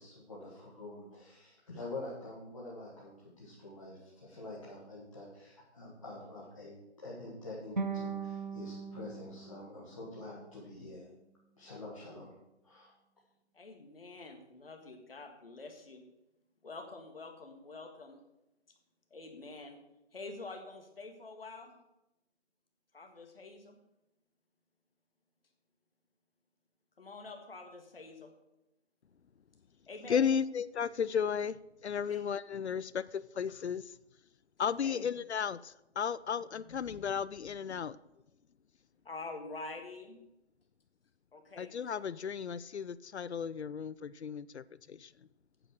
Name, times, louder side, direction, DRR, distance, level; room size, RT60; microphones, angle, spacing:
voice 1, 0.0-11.1 11.6-12.4 12.6-12.9, left 2 dB, 30° left, -7 dB, 1.8 m, -46 dB
sound 1, 7.8-10.9, right 5 dB, 45° right, 0.5 m, -40 dB
voice 2, 13.5-16.0 16.6-18.2 19.1-19.8 20.1-21.8 22.9-23.8 27.0-28.3 29.9-30.2 32.1-32.2 34.8-35.1 39.1-40.2 41.3-41.7, left 3 dB, 55° left, 4 dB, 1.7 m, -46 dB
voice 3, 30.1-31.6 31.8-33.9 34.6-38.0 41.6-45.1, left 7 dB, 70° left, 18 dB, 0.5 m, -34 dB
8.9 x 6.5 x 6.4 m, 0.89 s
figure-of-eight pair, 175°, 34 cm